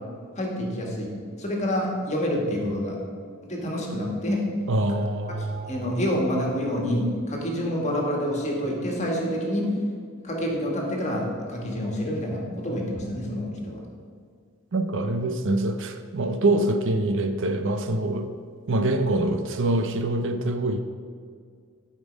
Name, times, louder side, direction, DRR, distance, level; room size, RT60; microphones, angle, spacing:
voice 1, 0.3-3.0 3.4-4.5 5.3-9.8 10.2-13.8, equal, 30° left, -1 dB, 1.7 m, -27 dB
voice 2, 4.7-6.0 14.7-18.3 18.7-20.8, right 2 dB, 55° right, 7 dB, 0.6 m, -25 dB
12.0 x 5.3 x 5.2 m, 2.1 s
head